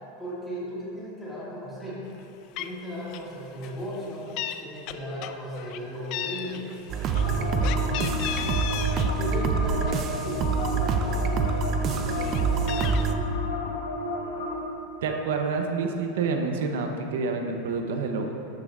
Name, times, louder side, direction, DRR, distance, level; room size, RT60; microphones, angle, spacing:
voice 1, 0.2-2.0 2.6-4.3 4.6-6.8 7.0-8.5 9.2-11.2, equal, 5° left, -8 dB, 2.0 m, -36 dB
Meow, 2.2-2.3 2.6-2.8 3.1-3.4 3.6-4.6 4.9-5.8 6.1-9.1 9.5-10.6 11.1-11.2 11.5-13.0, left 11 dB, 40° left, 0.4 m, -36 dB
sound 1, 6.9-13.1, right 5 dB, 25° right, 0.4 m, -26 dB
sound 2, 7.2-14.5, left 1 dB, 75° left, 1.4 m, -32 dB
voice 2, 15.0-18.3, right 4 dB, 70° right, 3 dB, 0.8 m, -28 dB
11.5 x 10.5 x 2.5 m, 2.9 s
supercardioid pair, 170°, 0 cm